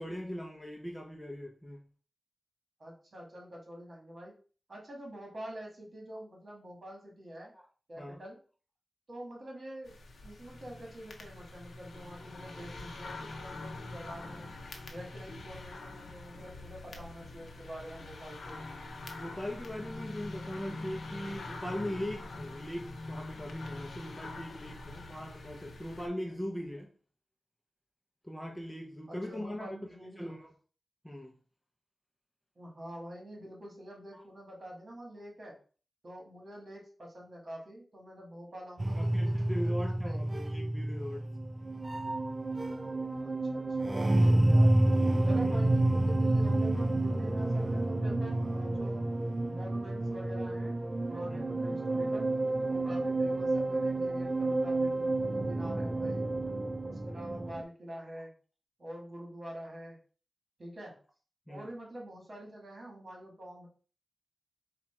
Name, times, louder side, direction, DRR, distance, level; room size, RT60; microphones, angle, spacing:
voice 1, 0.0-1.8 7.5-7.6 8.0-8.2 19.2-26.9 28.2-29.7 30.2-30.5 31.0-31.3 34.1-34.2 39.0-41.2 45.4-45.6 51.3-51.4 61.5-61.7, equal, 10° left, 0.7 m, -40 dB
voice 2, 2.8-4.3 4.7-7.5 7.9-8.4 9.1-9.9 10.2-14.5 14.9-18.6 29.1-30.3 32.6-35.5 36.0-40.3 43.2-44.7 45.2-49.0 49.5-50.8 51.1-52.3 52.7-56.3 56.8-58.3 58.8-60.0 60.6-60.9 61.5-63.7, equal, 45° right, 1.7 m, -46 dB
sound 1, 9.8-26.1, left 2 dB, 90° left, 0.8 m, -44 dB
sound 2, 38.8-57.6, right 2 dB, 30° right, 0.4 m, -29 dB
4.4 x 2.4 x 4.4 m
wide cardioid pair, 110°, 0 cm